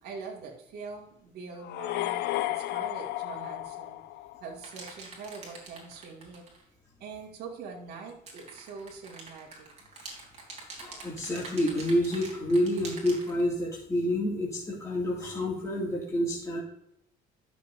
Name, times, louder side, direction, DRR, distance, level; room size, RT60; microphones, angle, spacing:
voice 1, 0.0-4.0 4.4-6.4 7.0-9.7, right 4 dB, 70° right, -2 dB, 2.2 m, -43 dB
sound 1, 1.6-4.6, left 15 dB, 75° left, 0.5 m, -33 dB
sound 2, 4.6-6.6 8.1-13.4, right 3 dB, 40° right, 3.6 m, -45 dB
voice 2, 10.8-16.6, left 1 dB, 20° left, -5 dB, 2.3 m, -28 dB
11.5 x 7.0 x 2.7 m, 0.78 s
cardioid pair, 110°, 17 cm